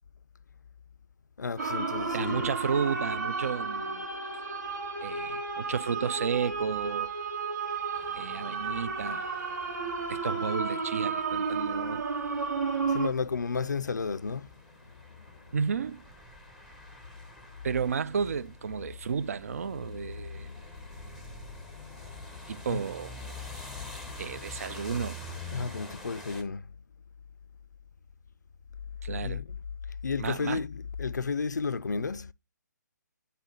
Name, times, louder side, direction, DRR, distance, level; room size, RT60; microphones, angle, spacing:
voice 1, 1.4-2.5 12.9-14.5 15.4-15.6 20.2-22.3 22.7-22.8 23.6-24.6 25.5-26.7 29.2-29.6 30.0-32.3, left 5 dB, 65° left, 0.4 m, -34 dB
sound 1, 1.6-13.1, right 4 dB, 65° right, 1.8 m, -32 dB
voice 2, 2.1-4.1 5.0-7.1 8.1-9.3 10.1-12.0 15.5-16.0 17.6-20.5 22.5-23.2 24.2-25.2 29.0-29.4 30.2-30.6, right 6 dB, 50° right, 0.3 m, -32 dB
sound 2, 7.9-26.4, left 2 dB, ahead, 0.7 m, -47 dB
9.2 x 4.1 x 3.0 m
figure-of-eight pair, 135°, 10 cm